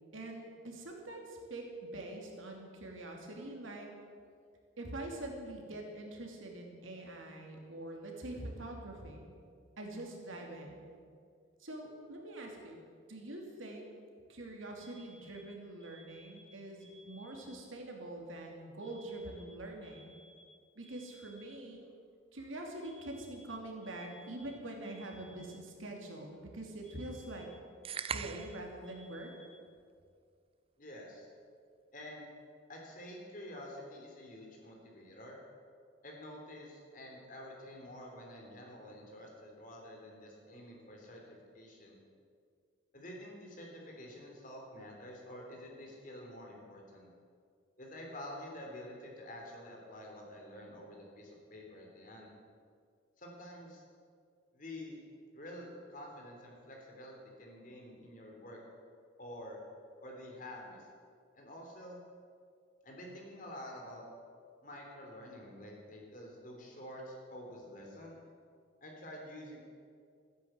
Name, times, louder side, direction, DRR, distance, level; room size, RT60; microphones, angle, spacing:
voice 1, 0.1-3.9 4.8-9.3 9.8-10.8 11.6-12.8 13.1-13.9 14.3-20.1 20.8-21.8 22.3-27.5 28.1-29.3, right 1 dB, 85° right, 1 dB, 2.8 m, -44 dB
Alarm, 14.8-17.8 18.8-21.8 22.8-25.8 26.8-29.8, equal, 5° left, 4.7 m, -60 dB
sound 1, 27.9-28.7, right 7 dB, 30° right, 0.4 m, -39 dB
voice 2, 30.8-31.3 31.9-32.3 32.7-35.4 36.0-42.0 42.9-47.1 47.8-52.3 53.2-53.8 54.5-55.0 55.3-58.6 59.2-59.6 60.0-60.9 61.3-62.0 62.8-64.0 64.6-68.2 68.8-69.6, left 1 dB, 40° left, 0 dB, 3.3 m, -48 dB
14.5 x 10.0 x 8.1 m, 2.2 s
head